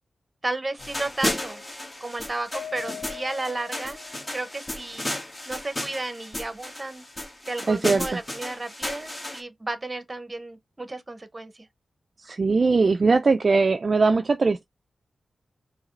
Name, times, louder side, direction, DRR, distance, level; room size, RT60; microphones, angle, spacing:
voice 1, 0.4-1.6 2.0-4.0 4.3-5.2 5.5-7.0 7.4-11.7, right 2 dB, 25° right, 0.9 m, -33 dB
sound 1, 0.8-9.4, left 1 dB, 20° left, 1.4 m, -34 dB
Mallet percussion, 2.5-4.8, left 8 dB, 60° left, 0.7 m, -41 dB
voice 2, 7.7-8.2 12.2-14.6, right 4 dB, 45° right, 0.3 m, -21 dB
4.7 x 2.9 x 3.2 m
wide cardioid pair, 85°, 0 cm